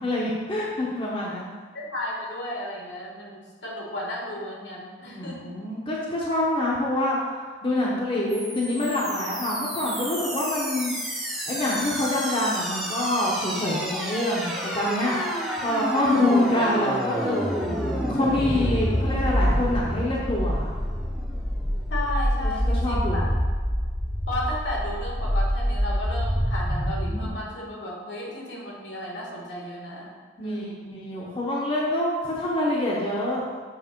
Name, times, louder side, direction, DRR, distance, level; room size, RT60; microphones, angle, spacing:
voice 1, 0.0-1.5 5.1-10.9 11.5-15.2 15.6-17.4 18.1-20.7 22.7-23.3 30.4-33.5, left 1 dB, 30° left, -4 dB, 0.8 m, -26 dB
voice 2, 1.7-5.5 21.9-23.3 24.3-30.1 30.4-31.0, left 1 dB, 70° left, -2 dB, 1.3 m, -34 dB
sound 1, 8.3-27.3, equal, ahead, 0.7 m, -27 dB
7.2 x 3.3 x 4.4 m, 1.5 s
head